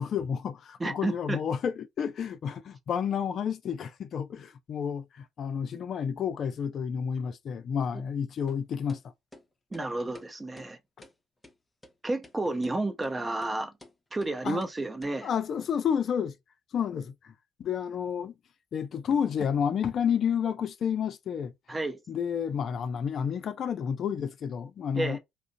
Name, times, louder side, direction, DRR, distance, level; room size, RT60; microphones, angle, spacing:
voice 1, 0.0-9.0 14.4-14.6 15.2-16.3 16.7-17.3 17.6-18.3 18.7-21.5 22.1-25.2, left 7 dB, 55° left, 0.4 m, -30 dB
voice 2, 0.8-1.4 9.7-10.8 12.0-13.7 14.1-15.3 21.7-22.0 24.9-25.2, right 2 dB, 25° right, 0.6 m, -31 dB
sound 1, 8.5-8.6 8.9-9.0 9.3-9.4 9.7-9.9 10.1-10.3 10.6-10.7 11.0-11.1 11.4-11.5 11.8-11.9 12.2-12.4 12.6-12.8 13.0-13.1 13.4-13.5 13.8-13.9 14.2-14.3 14.6-14.7 15.0-15.1, left 1 dB, 20° left, 0.7 m, -51 dB
2.4 x 2.0 x 2.6 m
hypercardioid pair, 50°, 0 cm